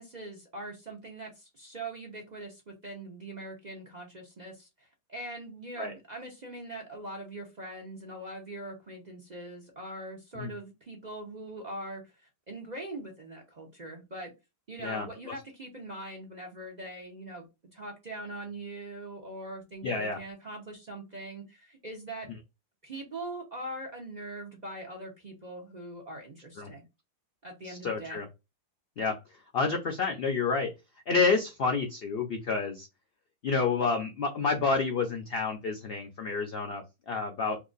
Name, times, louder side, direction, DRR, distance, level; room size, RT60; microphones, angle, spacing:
voice 1, 0.0-12.1 12.5-14.3 14.7-17.5 17.7-22.3 22.8-26.8 27.4-28.2, right 1 dB, 45° right, 0 dB, 0.5 m, -42 dB
voice 2, 19.8-20.2 26.6-26.7 27.7-28.2 29.0-29.2 29.5-30.7 31.1-32.9 33.4-37.6, left 4 dB, 85° left, 4 dB, 0.5 m, -29 dB
2.9 x 2.4 x 3.8 m, 0.24 s
omnidirectional pair, 1.7 m